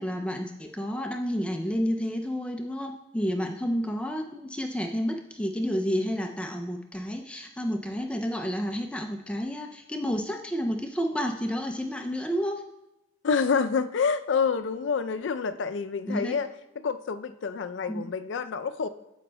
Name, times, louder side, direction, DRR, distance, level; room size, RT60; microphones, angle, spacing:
voice 1, 0.0-12.6 16.1-16.4 17.9-18.1, equal, 5° left, 4 dB, 0.3 m, -30 dB
voice 2, 13.2-16.5 16.8-18.9, left 5 dB, 75° left, 11 dB, 0.4 m, -27 dB
15.0 x 5.1 x 2.2 m, 0.94 s
head